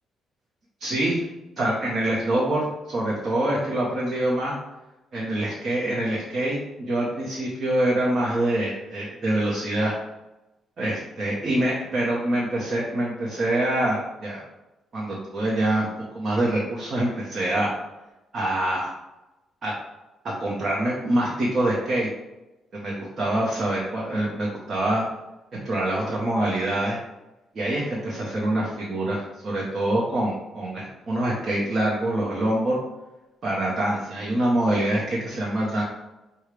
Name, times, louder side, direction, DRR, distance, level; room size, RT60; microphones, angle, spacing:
voice 1, 0.8-1.2 1.6-4.5 5.1-9.9 10.8-14.4 14.9-17.7 18.3-18.9 19.6-19.7 20.4-22.1 22.7-25.0 25.6-27.0 27.5-32.8 33.4-35.8, right 1 dB, 50° right, -4 dB, 0.9 m, -25 dB
6.4 x 2.3 x 3.3 m, 1.0 s
cardioid pair, 90°, 0 cm